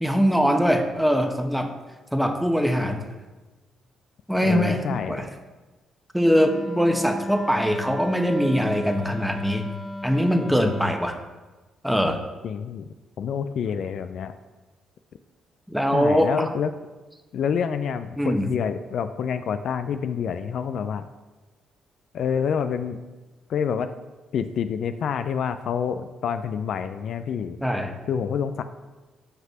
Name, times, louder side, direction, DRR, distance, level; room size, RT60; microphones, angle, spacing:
voice 1, 0.0-1.7 2.1-3.1 4.3-5.2 6.1-9.7 10.0-11.2 11.8-12.2 15.7-16.5 18.2-18.5 27.6-27.9, equal, ahead, 6 dB, 1.0 m, -22 dB
voice 2, 4.4-5.3 12.4-12.9 13.2-14.3 15.9-16.7 17.3-21.1 22.1-23.0 23.5-23.9 24.3-27.6 28.1-28.6, left 7 dB, 65° left, 10 dB, 0.3 m, -27 dB
Wind instrument woodwind instrument, 6.2-11.1, left 1 dB, 30° left, 1.0 m, -36 dB
5.9 x 5.5 x 5.9 m, 1.2 s
supercardioid pair, 55°, 0 cm